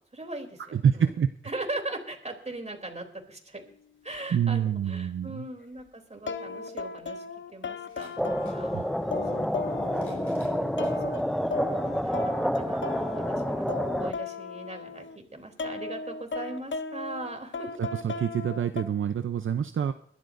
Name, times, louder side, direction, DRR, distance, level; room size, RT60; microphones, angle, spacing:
voice 1, 0.1-1.1 1.4-3.7 4.0-7.2 7.5-8.7 9.3-11.4 11.8-17.8, right 2 dB, 35° right, 4 dB, 3.2 m, -40 dB
voice 2, 0.7-1.3 4.3-5.4 8.7-8.8 17.8-19.9, right 8 dB, 70° right, 9 dB, 0.6 m, -26 dB
sound 1, 4.1-4.2 6.3-15.2 15.6-18.8, left 4 dB, 65° left, 0.7 m, -37 dB
sound 2, 7.8-8.6 9.6-11.0 11.7-11.8 13.1-13.2, left 3 dB, 90° left, 6.2 m, -58 dB
sound 3, 8.2-14.1, equal, ahead, 0.5 m, -29 dB
21.5 x 12.0 x 2.6 m, 0.66 s
cardioid pair, 50°, 21 cm